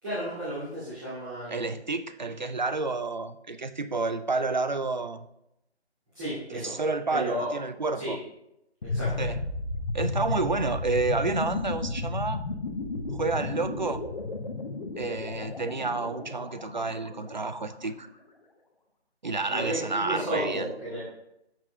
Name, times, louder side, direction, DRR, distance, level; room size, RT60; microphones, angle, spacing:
voice 1, 0.0-1.7 6.1-6.7 7.1-7.5 7.9-8.1 8.9-9.2 19.5-21.0, right 1 dB, 20° right, -13 dB, 2.4 m, -33 dB
voice 2, 1.5-5.3 6.5-8.2 9.2-9.4 9.9-12.4 13.1-14.1 14.9-18.1 19.2-20.7, right 3 dB, 45° right, 11 dB, 0.4 m, -30 dB
sound 1, 8.8-17.7, left 3 dB, 45° left, 1.0 m, -33 dB
12.5 x 6.1 x 2.2 m, 0.84 s
figure-of-eight pair, 150°, 33 cm